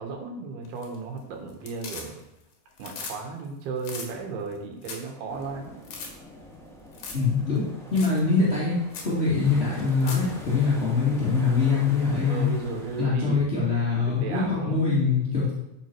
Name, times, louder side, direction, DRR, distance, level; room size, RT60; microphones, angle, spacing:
voice 1, 0.0-2.2 2.8-5.8 12.2-13.5 14.1-14.8, right 4 dB, 85° right, 2 dB, 3.5 m, -35 dB
sound 1, 0.6-1.2 1.5-2.4 2.7-3.2 3.4-3.5 3.8-4.1 4.5-4.6 4.8-5.1 5.4-5.5 5.8-6.1 6.9-7.3 7.5-7.6 8.0-8.2 8.5-8.6 8.9-9.1 9.8-10.3 12.5-12.6, left 5 dB, 55° left, 2.9 m, -39 dB
sound 2, 5.3-13.0, left 1 dB, 5° left, 0.4 m, -44 dB
voice 2, 7.1-7.7 7.9-8.7 9.0-12.5 13.0-15.5, left 4 dB, 25° left, -8 dB, 1.6 m, -23 dB
13.0 x 6.5 x 4.6 m, 0.88 s
omnidirectional pair, 4.4 m